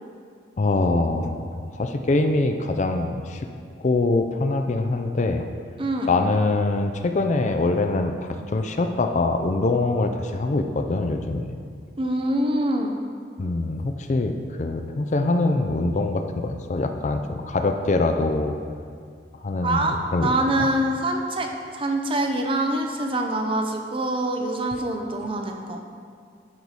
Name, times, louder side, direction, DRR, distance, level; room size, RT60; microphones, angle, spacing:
voice 1, 0.6-1.5 1.8-3.4 3.8-5.5 6.1-11.5 13.4-18.6 19.4-20.3, left 2 dB, 40° left, 6 dB, 0.4 m, -24 dB
voice 2, 5.8-6.1 12.0-13.0 19.6-25.8, right 1 dB, 30° right, 3 dB, 0.7 m, -25 dB
11.5 x 4.7 x 4.1 m, 2.2 s
head